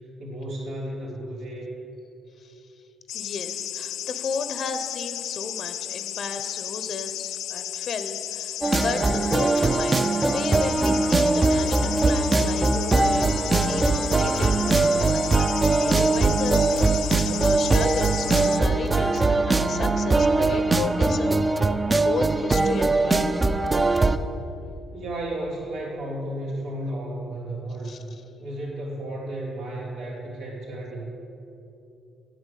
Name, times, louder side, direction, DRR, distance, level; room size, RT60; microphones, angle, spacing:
voice 1, 0.2-1.7 24.9-28.1 28.4-31.0, right 1 dB, 90° right, -4 dB, 3.1 m, -33 dB
sound 1, 3.1-18.6, left 12 dB, 90° left, 0.3 m, -33 dB
voice 2, 3.1-23.3 27.8-28.0, left 5 dB, 55° left, 10 dB, 0.7 m, -34 dB
sound 2, 8.6-24.2, right 3 dB, 25° right, 0.5 m, -21 dB
9.1 x 7.8 x 8.3 m, 2.8 s
cardioid pair, 90°, 0 cm